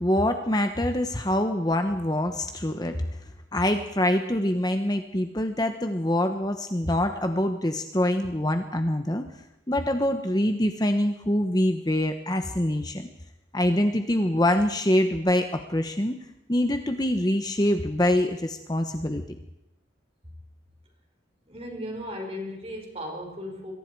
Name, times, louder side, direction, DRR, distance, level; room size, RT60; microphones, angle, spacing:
voice 1, 0.0-3.0 3.5-9.2 9.7-13.1 13.5-16.2 16.5-19.2, left 1 dB, 20° left, 6 dB, 1.1 m, -25 dB
voice 2, 21.5-23.7, equal, 30° right, 2 dB, 5.3 m, -36 dB
27.0 x 22.5 x 4.7 m, 0.87 s
head